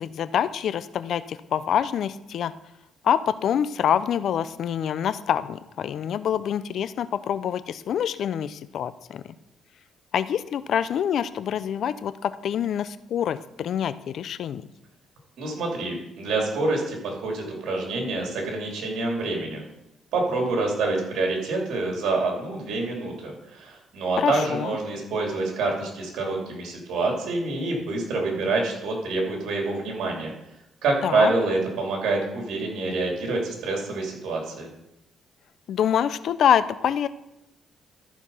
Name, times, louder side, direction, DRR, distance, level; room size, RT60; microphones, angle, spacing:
voice 1, 0.0-2.5 3.0-9.2 10.1-14.6 24.2-24.8 31.0-31.3 35.7-37.1, left 9 dB, 70° left, 15 dB, 0.5 m, -26 dB
voice 2, 15.4-19.6 20.1-30.3 30.8-34.7, right 3 dB, 80° right, 0 dB, 3.0 m, -27 dB
13.5 x 4.6 x 5.6 m, 0.89 s
cardioid pair, 90°, 0 cm